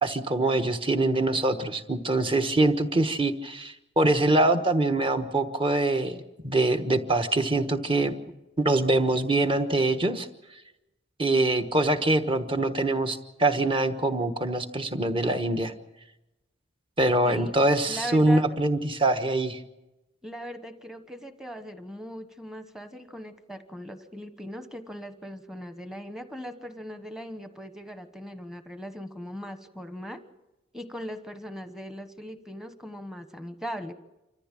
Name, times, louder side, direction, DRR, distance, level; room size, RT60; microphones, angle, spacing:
voice 1, 0.0-8.1 8.6-10.3 11.2-15.7 17.0-19.6, right 2 dB, 25° right, 7 dB, 1.2 m, -24 dB
voice 2, 17.9-18.4 20.2-30.2 30.7-33.9, equal, 5° right, 8 dB, 1.2 m, -39 dB
27.0 x 14.5 x 7.6 m, 0.99 s
head